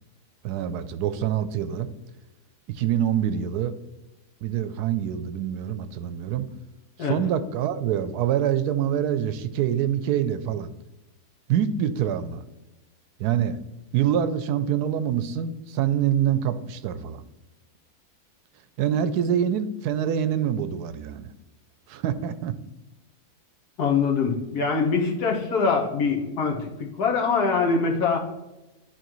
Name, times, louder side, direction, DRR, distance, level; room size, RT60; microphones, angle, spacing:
voice 1, 0.4-1.9 2.7-3.7 4.4-6.5 7.0-10.7 11.5-12.4 13.2-13.6 13.9-17.2 18.8-21.3 21.9-22.5, right 9 dB, 80° right, 11 dB, 1.1 m, -25 dB
voice 2, 23.8-26.7 27.0-28.2, left 5 dB, 75° left, 0 dB, 1.7 m, -23 dB
10.5 x 4.1 x 3.1 m, 1.0 s
omnidirectional pair, 1.7 m